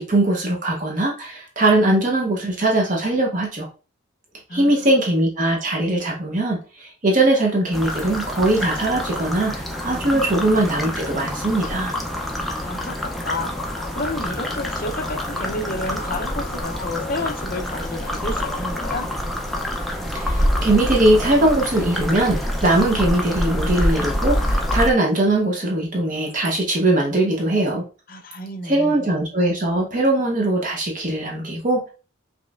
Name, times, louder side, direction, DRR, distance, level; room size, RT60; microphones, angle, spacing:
voice 1, 0.0-3.7 4.5-11.9 20.1-27.8 28.6-31.9, right 1 dB, 40° right, -1 dB, 0.8 m, -20 dB
voice 2, 4.5-4.9 10.1-11.1 12.5-19.1 28.1-29.0, left 2 dB, 45° left, 5 dB, 0.6 m, -31 dB
sound 1, 7.7-24.9, equal, ahead, 0.5 m, -26 dB
sound 2, 11.5-19.2, left 1 dB, 25° left, 1.5 m, -38 dB
5.1 x 3.2 x 2.4 m, 0.34 s
head